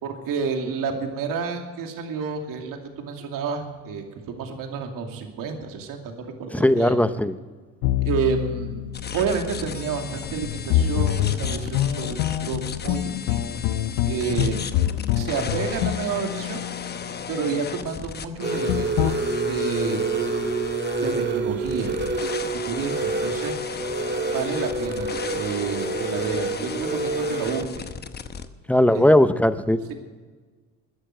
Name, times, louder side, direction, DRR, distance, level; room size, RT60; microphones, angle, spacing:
voice 1, 0.0-7.0 8.0-13.7 14.1-14.6 15.1-16.6 17.3-19.2 19.5-20.1 21.0-22.0 22.5-23.6 24.3-27.9 28.9-29.1 29.9-30.0, right 5 dB, 65° right, 4 dB, 2.6 m, -30 dB
voice 2, 6.5-7.3 28.7-29.9, left 1 dB, 5° left, 13 dB, 0.7 m, -18 dB
sound 1, 7.8-17.2 18.7-19.1, left 12 dB, 80° left, 0.8 m, -26 dB
sound 2, 8.9-28.5, left 6 dB, 30° left, 0.9 m, -36 dB
sound 3, 18.4-27.7, right 3 dB, 30° right, 1.9 m, -28 dB
14.0 x 10.0 x 7.8 m, 1.4 s
supercardioid pair, 95°, 36 cm